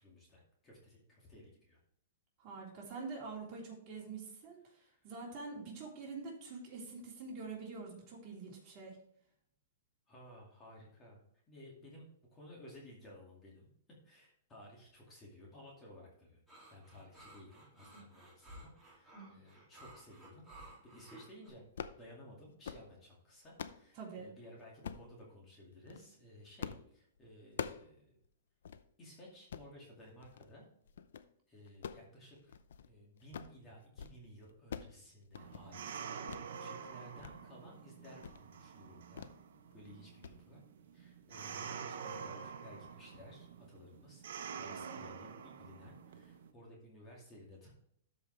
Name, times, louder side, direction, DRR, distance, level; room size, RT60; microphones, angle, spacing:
voice 1, 0.0-1.8 4.7-5.1 10.1-11.2 11.5-13.7 14.0-16.4 16.7-21.6 21.9-28.2 29.0-30.7 31.5-32.6 32.8-39.3 39.7-40.6 40.9-44.2 44.6-47.7, left 1 dB, 20° left, -3 dB, 2.2 m, -56 dB
voice 2, 2.4-9.0 24.0-24.3, right 4 dB, 30° right, -4 dB, 3.4 m, -46 dB
sound 1, 16.5-21.5, right 2 dB, ahead, 2.6 m, -55 dB
sound 2, 21.6-22.0 22.5-22.9 23.3-23.8 24.8-25.1 25.7-26.0 26.6-26.9 27.2-27.9 28.2-28.3 28.6-28.8 29.3-29.7 30.2-30.5 30.9-31.3 31.7-32.9 33.2-33.6 33.8-34.2 34.4-35.0 35.2-35.7 36.3-36.5 36.9-37.3 37.7-37.8 38.2-38.4 39.2-39.4 39.7-39.9 40.2-40.4, left 7 dB, 80° left, 0.6 m, -45 dB
sound 3, 35.4-46.5, right 6 dB, 70° right, 1.1 m, -47 dB
12.5 x 5.3 x 3.3 m, 0.69 s
hypercardioid pair, 155°, 0 cm